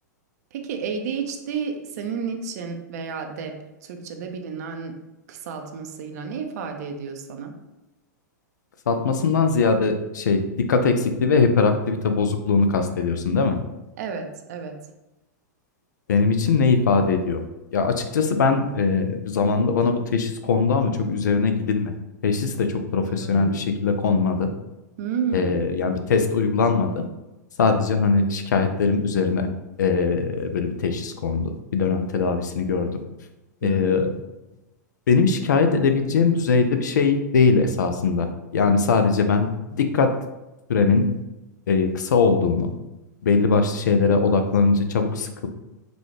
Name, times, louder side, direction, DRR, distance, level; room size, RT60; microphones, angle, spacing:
voice 1, 0.5-5.0 5.3-7.6 14.0-14.8 23.0-23.9 25.0-25.6 33.6-34.1, right 6 dB, 60° right, 5 dB, 0.5 m, -31 dB
voice 2, 8.9-13.6 16.1-17.4 17.7-21.9 22.2-24.5 25.3-27.0 27.6-29.5 29.8-33.0 33.6-34.1 35.1-40.2 40.7-41.2 41.7-42.7 43.2-45.5, left 4 dB, 75° left, 7 dB, 0.5 m, -21 dB
4.0 x 2.3 x 3.2 m, 0.99 s
hypercardioid pair, 110°, 10 cm